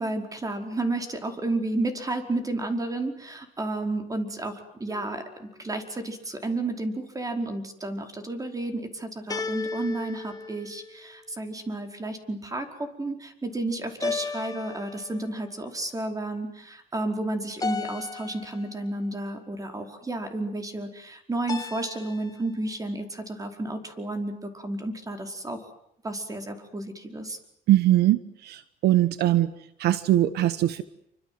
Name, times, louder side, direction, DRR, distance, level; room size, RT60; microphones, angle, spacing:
voice 1, 0.0-25.7 26.0-27.4, right 2 dB, 20° right, 5 dB, 4.9 m, -32 dB
sound 1, 4.9-5.5 9.3-11.3 14.0-15.4 17.6-18.8 21.5-22.5, left 4 dB, 20° left, 1.7 m, -35 dB
voice 2, 27.7-29.5 29.8-30.8, right 14 dB, 75° right, 14 dB, 1.2 m, -21 dB
28.0 x 25.5 x 7.9 m, 0.75 s
cardioid pair, 110°, 17 cm